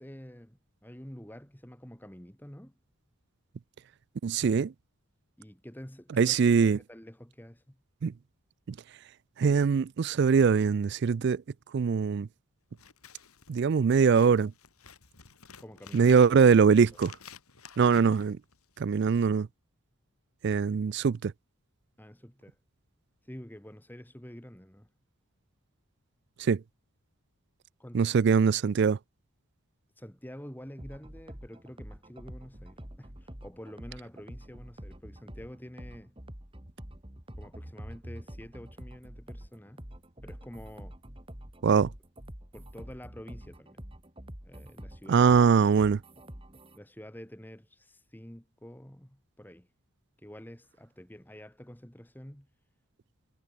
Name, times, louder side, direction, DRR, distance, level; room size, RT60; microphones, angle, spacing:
voice 1, 0.0-2.8 5.4-6.4 6.6-7.8 15.6-16.1 22.0-22.6 23.2-24.9 27.8-28.1 30.0-36.1 37.4-39.9 40.2-41.0 42.5-43.8 44.4-45.5 45.8-45.9 46.7-49.7 50.2-52.5, equal, 10° left, 1.6 m, -48 dB
voice 2, 4.2-4.7 6.1-6.8 8.0-8.1 8.7-8.8 9.4-11.4 11.7-12.3 13.5-14.5 15.9-17.1 17.8-18.4 18.8-19.5 20.4-21.3 26.4-26.6 27.9-29.0 41.6-41.9 45.1-46.0, right 6 dB, 50° right, 0.3 m, -22 dB
Scissors, 12.7-19.0, left 6 dB, 90° left, 4.6 m, -52 dB
sound 1, 30.8-46.8, equal, 25° right, 3.0 m, -46 dB
head